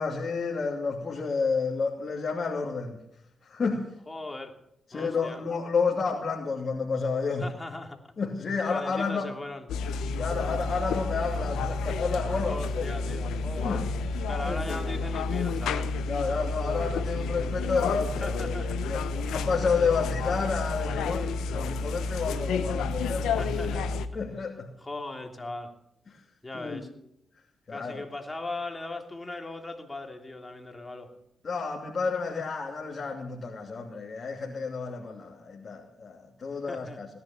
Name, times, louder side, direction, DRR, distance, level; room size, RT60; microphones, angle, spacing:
voice 1, 0.0-3.0 3.4-3.8 4.9-7.5 8.2-9.3 10.2-12.8 13.6-13.8 14.4-14.9 16.1-23.5 24.1-24.7 26.5-26.9 27.7-28.1 31.4-37.1, left 4 dB, 50° left, -2 dB, 2.8 m, -30 dB
voice 2, 4.1-4.6 4.9-5.4 7.4-8.1 8.7-9.7 12.5-13.8 14.2-15.9 18.2-18.8 23.4-23.9 24.8-25.7 26.4-26.9 27.7-31.1 36.7-37.1, left 2 dB, 25° left, 3 dB, 3.2 m, -38 dB
sound 1, 9.7-24.1, left 4 dB, 90° left, 0.9 m, -30 dB
18.0 x 10.5 x 7.2 m, 0.78 s
supercardioid pair, 55°, 0 cm